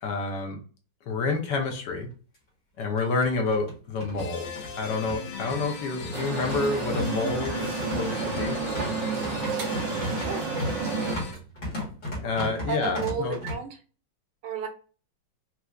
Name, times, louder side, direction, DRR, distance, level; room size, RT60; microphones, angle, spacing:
voice 1, 0.0-0.6 1.1-2.1 2.8-4.5 4.8-8.6 12.2-13.4, left 3 dB, 65° left, 3 dB, 1.3 m, -28 dB
sound 1, 1.5-1.6 1.9-2.0 2.8-13.5, left 1 dB, 40° left, 1.6 m, -36 dB
sound 2, 4.2-11.3, left 7 dB, 90° left, 1.6 m, -39 dB
sound 3, 6.1-11.1, right 4 dB, 65° right, 1.4 m, -30 dB
voice 2, 12.7-13.8 14.4-14.7, right 6 dB, 90° right, 4 dB, 1.6 m, -32 dB
4.3 x 2.5 x 2.3 m, 0.38 s
omnidirectional pair, 2.3 m